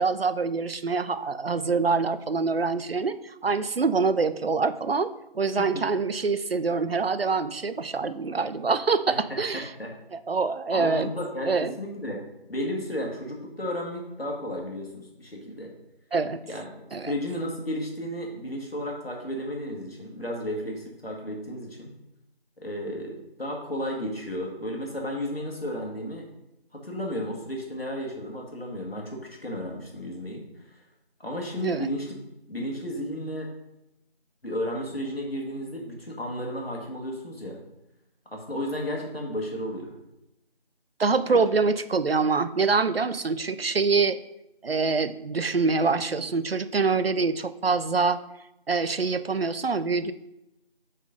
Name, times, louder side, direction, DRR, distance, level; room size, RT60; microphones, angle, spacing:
voice 1, 0.0-5.1 5.3-9.7 10.1-11.1 11.4-11.8 16.1-16.4 16.9-17.1 31.6-31.9 41.0-44.2 44.6-48.2 48.7-50.1, right 4 dB, 75° right, 13 dB, 0.5 m, -25 dB
voice 2, 9.1-9.9 10.7-12.2 12.5-15.7 16.5-21.9 22.6-26.2 26.7-30.5 31.2-32.1 32.5-33.5 34.4-37.6 38.3-40.0 41.3-41.4, equal, 75° left, -1 dB, 1.9 m, -33 dB
5.4 x 4.1 x 5.1 m, 0.89 s
figure-of-eight pair, 180°, 30 cm